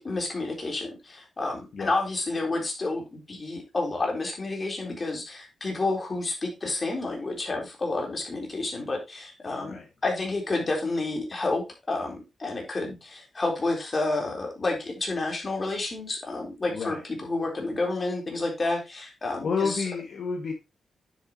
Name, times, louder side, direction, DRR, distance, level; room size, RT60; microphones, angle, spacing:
voice 1, 0.0-19.8, left 2 dB, 35° left, 1 dB, 3.9 m, -30 dB
voice 2, 19.4-20.5, left 5 dB, 65° left, 1 dB, 1.9 m, -30 dB
9.7 x 7.6 x 3.0 m, 0.24 s
cardioid pair, 95°, 0 cm